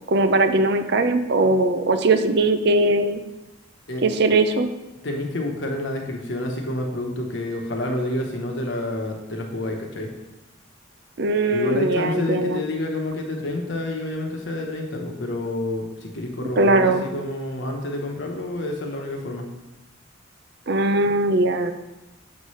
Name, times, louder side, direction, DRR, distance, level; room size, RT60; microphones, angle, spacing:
voice 1, 0.1-3.2 4.0-4.7 11.2-12.6 16.6-17.0 20.7-21.7, right 2 dB, 55° right, 8 dB, 0.5 m, -20 dB
voice 2, 5.0-10.1 11.5-19.4, left 1 dB, 65° left, 1 dB, 1.1 m, -28 dB
7.1 x 3.2 x 5.6 m, 1.0 s
head